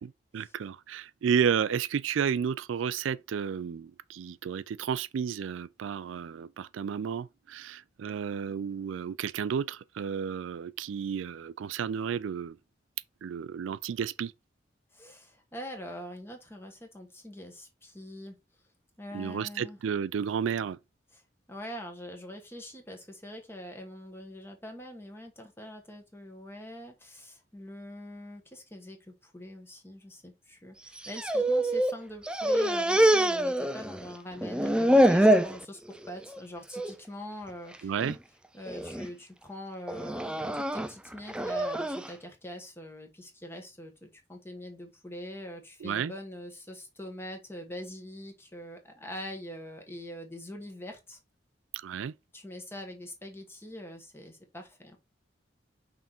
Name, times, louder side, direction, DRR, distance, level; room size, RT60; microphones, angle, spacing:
voice 1, 0.0-12.6 13.2-14.3 19.1-20.8 37.8-38.2 45.8-46.1 51.7-52.1, right 7 dB, 85° right, 0.3 m, -32 dB
voice 2, 14.9-18.4 19.0-19.8 21.1-21.2 21.5-37.9 38.5-51.2 52.3-55.0, equal, 10° left, 1.3 m, -43 dB
sound 1, 30.9-32.0 32.2-34.1 34.4-35.6 36.0-36.4 36.7-36.9 37.7-38.1 38.7-39.1 39.9-42.1, right 1 dB, 5° right, 0.3 m, -25 dB
5.8 x 3.8 x 4.3 m
head